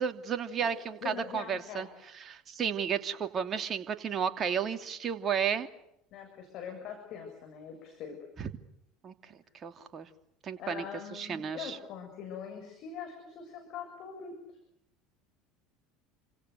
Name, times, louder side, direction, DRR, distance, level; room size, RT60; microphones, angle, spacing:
voice 1, 0.0-1.9 2.1-5.7 8.4-8.5 9.0-10.1 10.4-10.8 11.1-11.8, right 7 dB, 35° right, 7 dB, 2.9 m, -33 dB
voice 2, 0.6-1.9 6.1-8.2 10.6-14.4, left 7 dB, 50° left, 4 dB, 7.1 m, -43 dB
29.5 x 26.0 x 6.9 m, 0.76 s
figure-of-eight pair, 70°, 0 cm